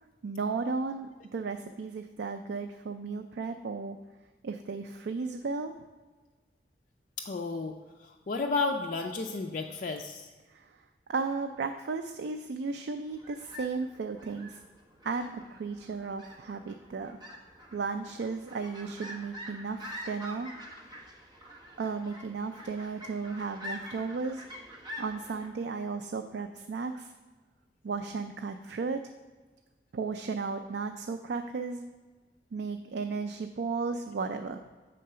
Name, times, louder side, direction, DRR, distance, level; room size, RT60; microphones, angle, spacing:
voice 1, 0.2-4.0 4.4-5.7 10.5-10.7 11.1-14.6 15.0-17.2 17.7-20.5 21.8-24.4 25.0-27.1 27.8-29.1 29.9-31.9 32.5-34.6, right 4 dB, 75° right, 6 dB, 0.4 m, -34 dB
voice 2, 7.2-7.7 8.0-10.3, left 3 dB, 50° left, 2 dB, 0.4 m, -32 dB
sound 1, 13.1-25.5, equal, 25° right, 1.0 m, -46 dB
7.5 x 3.9 x 5.5 m, 1.3 s
head